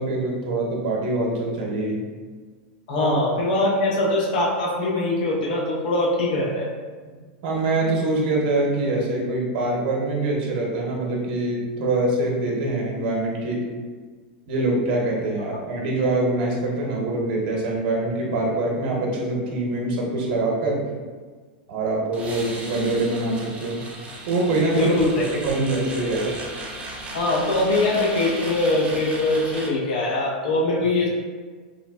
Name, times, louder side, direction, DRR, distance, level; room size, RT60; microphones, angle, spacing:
voice 1, 0.0-2.0 3.0-3.1 7.4-13.6 14.5-20.8 21.7-23.8 24.3-25.0 25.4-26.3, right 2 dB, 60° right, -2 dB, 0.8 m, -24 dB
voice 2, 2.9-6.7 24.7-25.2 27.1-31.1, left 2 dB, 65° left, -3 dB, 0.6 m, -22 dB
sound 1, 22.1-29.7, right 2 dB, 25° right, 0.6 m, -36 dB
3.7 x 2.1 x 2.2 m, 1.5 s
hypercardioid pair, 115°, 5 cm